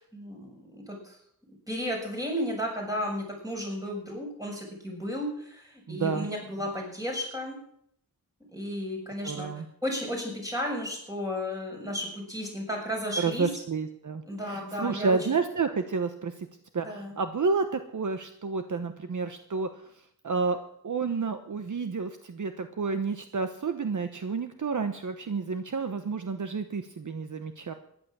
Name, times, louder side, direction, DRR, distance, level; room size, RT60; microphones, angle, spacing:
voice 1, 0.1-1.2 1.7-7.6 8.5-9.5 9.8-13.5 14.3-15.2 16.8-17.1, equal, 10° right, -1 dB, 6.6 m, -33 dB
voice 2, 5.9-6.3 9.2-9.6 13.2-16.5 16.7-27.7, right 4 dB, 55° right, 8 dB, 1.1 m, -30 dB
14.5 x 11.0 x 7.3 m, 0.70 s
wide cardioid pair, 115°, 37 cm